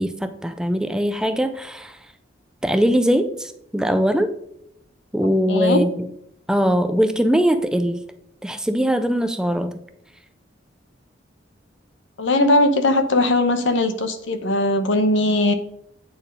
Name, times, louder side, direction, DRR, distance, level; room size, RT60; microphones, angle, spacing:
voice 1, 0.0-2.0 2.6-4.3 5.1-6.1 6.5-8.0 8.4-9.8, equal, 5° right, 9 dB, 0.4 m, -21 dB
voice 2, 5.5-5.8 12.2-15.5, left 2 dB, 80° left, 9 dB, 0.9 m, -19 dB
8.9 x 4.4 x 5.2 m, 0.74 s
head